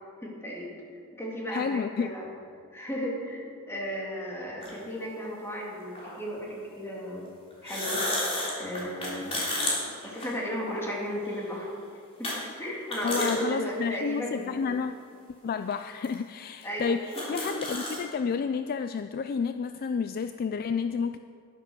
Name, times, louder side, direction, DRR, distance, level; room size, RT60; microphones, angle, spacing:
voice 1, 0.2-0.7 1.1-2.3 2.7-3.4 3.7-7.3 7.6-8.0 8.6-9.4 10.0-11.7 12.2-14.6 16.6-17.0 17.3-17.4, equal, 10° left, -3 dB, 2.6 m, -34 dB
voice 2, 1.5-2.1 13.0-14.9 15.4-21.2, left 5 dB, 40° left, 9 dB, 0.3 m, -30 dB
sound 1, 4.6-4.7 5.9-6.1 7.5-10.8 11.2-11.4 12.2-12.4 12.7-13.4 13.8-13.9 14.8-14.9 15.7-15.8 16.0-16.1 16.6-16.7 16.9-18.0, left 1 dB, 25° left, 3.2 m, -31 dB
11.0 x 10.0 x 6.2 m, 2.3 s
head